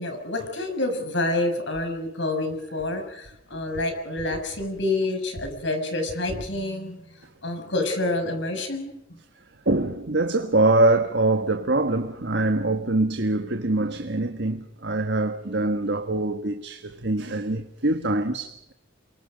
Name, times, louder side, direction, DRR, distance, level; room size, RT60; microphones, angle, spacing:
voice 1, 0.0-7.0 7.4-8.9, left 2 dB, 65° left, 6.5 m, -28 dB
voice 2, 9.6-18.7, right 2 dB, 60° right, 1.5 m, -24 dB
29.5 x 24.0 x 5.2 m
head